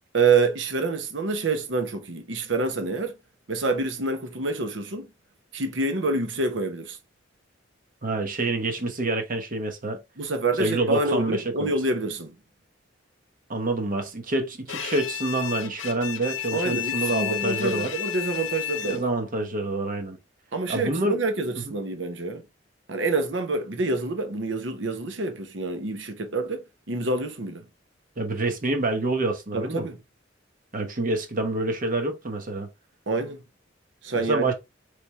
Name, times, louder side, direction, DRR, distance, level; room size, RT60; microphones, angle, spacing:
voice 1, 0.1-3.1 3.5-5.1 5.5-7.0 10.2-12.3 16.5-19.0 20.5-22.4 22.9-27.6 29.5-30.0 33.1-33.4 34.0-34.5, right 3 dB, 70° right, 0.9 m, -27 dB
voice 2, 8.0-10.0 10.6-11.7 13.5-17.9 18.8-20.2 20.7-21.2 21.6-21.7 28.2-29.9 30.7-32.7 34.1-34.5, right 2 dB, 45° right, 1.0 m, -27 dB
Bowed string instrument, 14.7-19.3, left 12 dB, 90° left, 0.7 m, -32 dB
4.2 x 3.3 x 3.2 m
head